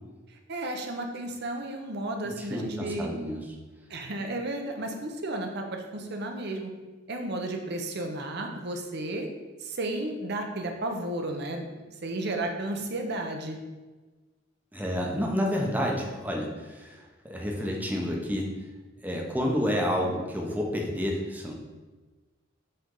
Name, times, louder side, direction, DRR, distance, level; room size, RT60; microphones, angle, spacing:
voice 1, 0.5-3.2 3.9-6.7 7.1-9.3 9.6-11.6 12.0-13.6, right 1 dB, 55° right, 3 dB, 0.8 m, -33 dB
voice 2, 2.2-3.4 14.7-18.5 19.0-21.5, equal, 10° right, -1 dB, 0.9 m, -30 dB
7.7 x 3.4 x 3.9 m, 1.3 s
head